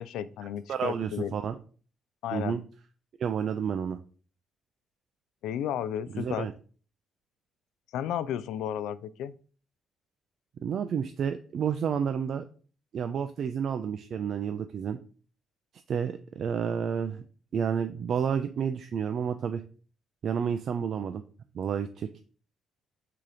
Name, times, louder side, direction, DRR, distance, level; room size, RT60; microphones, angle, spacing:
voice 1, 0.0-1.3 2.2-2.5 5.4-6.5 7.9-9.3, left 10 dB, 90° left, 16 dB, 0.3 m, -33 dB
voice 2, 0.7-1.6 2.3-2.6 3.2-4.0 6.1-6.5 10.6-12.4 12.9-15.0 15.9-17.2 17.5-19.6 20.2-21.2 21.5-22.1, right 7 dB, 55° right, 8 dB, 0.3 m, -30 dB
3.8 x 2.8 x 4.8 m, 0.40 s
cardioid pair, 125°, 0 cm